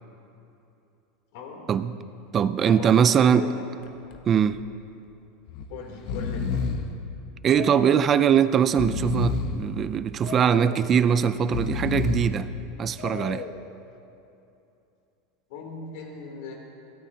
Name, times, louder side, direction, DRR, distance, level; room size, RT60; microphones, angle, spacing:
voice 1, 1.3-1.6 2.6-3.6 5.7-6.6 15.5-16.5, left 4 dB, 65° left, 0 dB, 3.2 m, -38 dB
voice 2, 2.3-3.5 4.3-4.6 7.4-12.5 12.8-13.4, right 8 dB, 25° right, 14 dB, 0.4 m, -21 dB
Breathing, 3.8-4.2 4.5-4.6 5.5-5.7 5.9-6.9 7.5-8.2 8.6-9.6 10.2-10.9 11.4-12.4 13.0-13.6, left 5 dB, 45° left, 1.0 m, -30 dB
22.0 x 17.5 x 2.9 m, 2.7 s
supercardioid pair, 165°, 0 cm